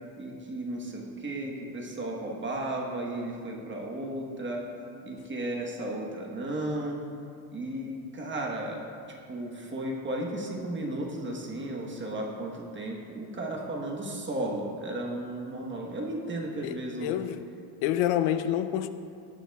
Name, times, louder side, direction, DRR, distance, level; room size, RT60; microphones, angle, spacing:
voice 1, 0.2-4.6 5.0-7.0 7.5-8.9 9.3-17.2, right 1 dB, 25° right, -1 dB, 1.1 m, -34 dB
voice 2, 16.6-17.4 17.8-18.9, left 11 dB, 85° left, 12 dB, 0.6 m, -28 dB
13.5 x 9.6 x 2.3 m, 2.4 s
cardioid pair, 135°, 46 cm